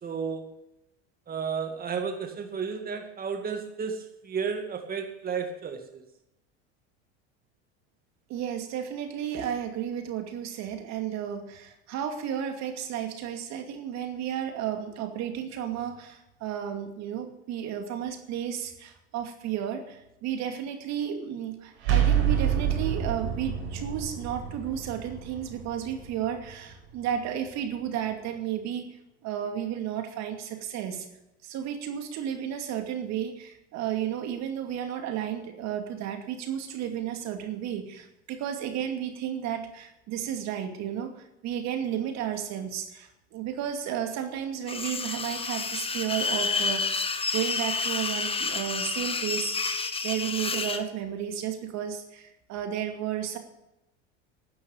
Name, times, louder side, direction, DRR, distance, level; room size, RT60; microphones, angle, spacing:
voice 1, 0.0-0.6 1.3-6.0, right 6 dB, 25° right, 5 dB, 2.1 m, -33 dB
voice 2, 8.3-29.0 29.2-31.1 31.4-47.0 47.3-49.5 50.0-53.4, right 9 dB, 55° right, 6 dB, 2.5 m, -33 dB
sound 1, 21.8-27.5, right 9 dB, 80° right, 5.1 m, -28 dB
sound 2, 44.7-50.8, left 4 dB, 15° left, 1.4 m, -29 dB
12.0 x 9.5 x 8.9 m, 0.88 s
hypercardioid pair, 95°, 33 cm